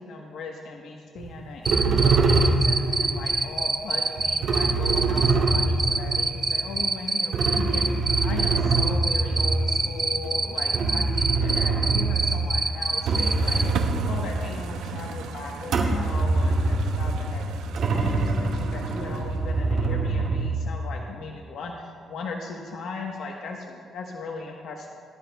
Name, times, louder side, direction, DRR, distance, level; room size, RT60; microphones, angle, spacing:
voice 1, 0.0-17.4 17.8-24.9, left 4 dB, 75° left, 0 dB, 1.1 m, -38 dB
sound 1, 1.2-1.3 1.6-3.3 4.2-6.7 7.3-12.6 12.9-15.1 15.7-20.7, right 3 dB, 70° right, 2.4 m, -24 dB
Cricket, 1.6-13.6, right 3 dB, 25° right, 0.8 m, -25 dB
sound 2, 12.7-19.7, right 6 dB, 90° right, 0.7 m, -39 dB
18.5 x 12.5 x 2.3 m, 2.1 s
cardioid pair, 90°, 0 cm